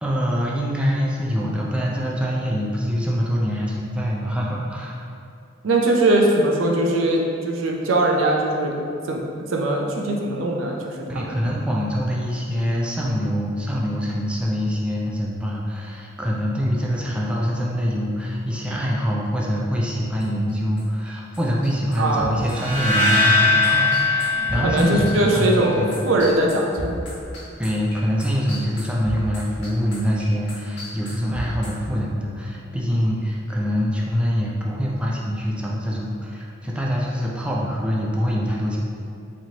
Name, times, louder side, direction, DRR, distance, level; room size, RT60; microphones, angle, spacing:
voice 1, 0.0-5.0 11.1-25.9 27.6-38.8, equal, 5° right, -4 dB, 0.4 m, -24 dB
voice 2, 5.6-8.8 9.1-9.2 9.5-11.3 22.0-22.3 24.4-27.0, right 1 dB, 80° right, -1 dB, 0.5 m, -21 dB
sound 1, 20.2-21.1 21.3-31.7, equal, 60° left, 1.4 m, -34 dB
sound 2, 22.5-25.6, left 3 dB, 60° right, 1.1 m, -21 dB
4.2 x 3.0 x 2.8 m, 2.5 s
head